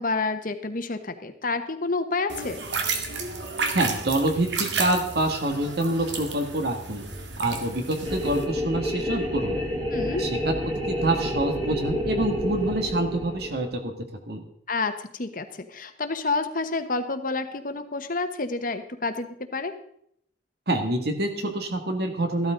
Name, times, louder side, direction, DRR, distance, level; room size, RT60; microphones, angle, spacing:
voice 1, 0.0-2.6 9.9-10.3 14.7-19.7, left 3 dB, 50° left, 8 dB, 1.1 m, -29 dB
sound 1, 2.3-8.4, right 4 dB, 85° right, 2.0 m, -32 dB
voice 2, 3.7-7.0 7.4-9.6 10.2-10.5 10.9-13.9 14.3-14.4 20.7-22.5, right 1 dB, 65° right, 5 dB, 2.1 m, -26 dB
sound 2, 8.0-13.8, equal, 30° right, 2.9 m, -29 dB
14.5 x 12.5 x 3.9 m, 0.70 s
head